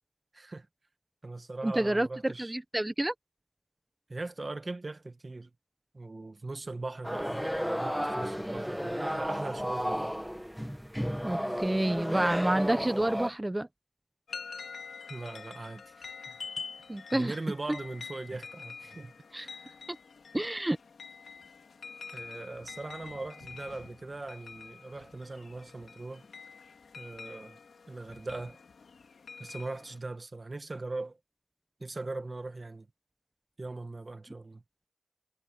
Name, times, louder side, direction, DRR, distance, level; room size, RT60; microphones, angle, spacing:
voice 1, 0.3-0.7 1.2-2.5 4.1-5.5 5.9-10.1 15.1-16.4 17.1-19.8 22.1-26.3 26.9-27.6 27.9-28.6 29.4-31.2 31.8-32.9 33.6-34.6, right 2 dB, 40° right, 1.7 m, -40 dB
voice 2, 1.6-3.1 11.2-13.7 16.9-17.3 19.3-19.5 20.3-20.8, right 1 dB, 20° right, 1.1 m, -29 dB
sound 1, 7.0-13.3, equal, ahead, 1.4 m, -33 dB
sound 2, 14.3-30.0, left 5 dB, 80° left, 3.0 m, -46 dB
cardioid pair, 60°, 0 cm